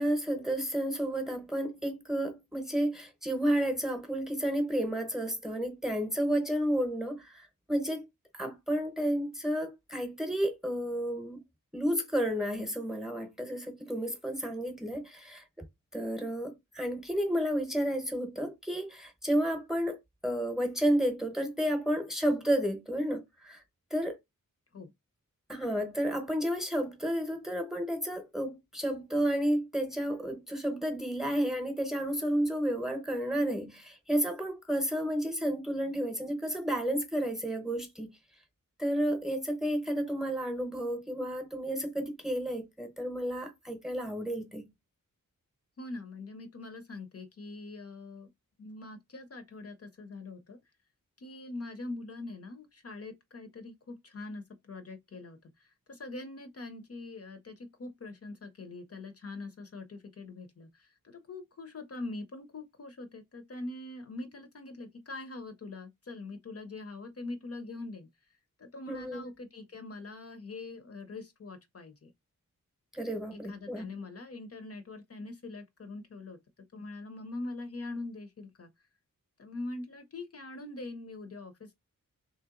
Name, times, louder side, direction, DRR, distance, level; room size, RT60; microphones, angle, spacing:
voice 1, 0.0-8.1 8.3-11.4 11.7-15.6 15.9-23.6 23.9-24.2 25.5-38.1 38.8-44.7 68.9-69.2 72.9-74.0, equal, ahead, 0.8 m, -31 dB
voice 2, 45.8-48.3 48.6-50.6 51.2-72.1 73.3-76.4 76.7-78.7 79.4-81.7, left 2 dB, 45° left, 0.6 m, -43 dB
3.1 x 2.8 x 3.6 m
wide cardioid pair, 115°, 33 cm